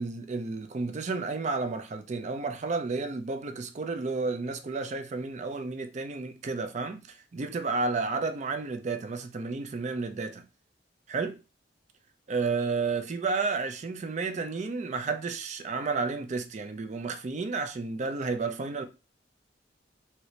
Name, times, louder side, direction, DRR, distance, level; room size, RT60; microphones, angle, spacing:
voice 1, 0.0-10.4 11.1-11.3 12.3-18.8, right 4 dB, 40° right, 0.4 m, -31 dB
2.9 x 2.7 x 3.1 m
head